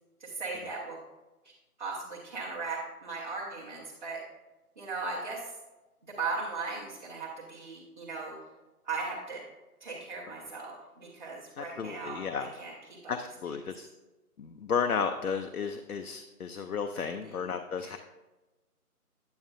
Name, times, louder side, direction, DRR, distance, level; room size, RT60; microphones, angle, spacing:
voice 1, 0.2-1.0 1.8-4.2 4.8-5.5 6.2-8.3 8.8-9.4 9.8-13.1 16.9-17.5 17.8-18.0, right 4 dB, 30° right, -5 dB, 1.0 m, -38 dB
voice 2, 11.6-12.5 13.1-13.9 14.4-18.0, left 6 dB, 70° left, 7 dB, 0.6 m, -33 dB
9.4 x 7.7 x 2.5 m, 1.1 s
figure-of-eight pair, 150°, 45 cm